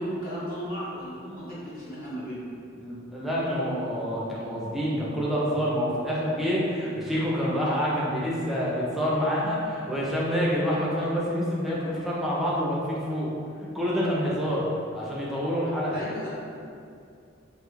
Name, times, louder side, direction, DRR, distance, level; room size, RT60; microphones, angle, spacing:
voice 1, 0.0-2.6 15.9-16.3, equal, 45° left, -10 dB, 0.8 m, -35 dB
voice 2, 2.8-13.3 13.7-14.7 14.9-16.0, equal, ahead, -6 dB, 0.4 m, -27 dB
2.2 x 2.0 x 3.0 m, 2.5 s
head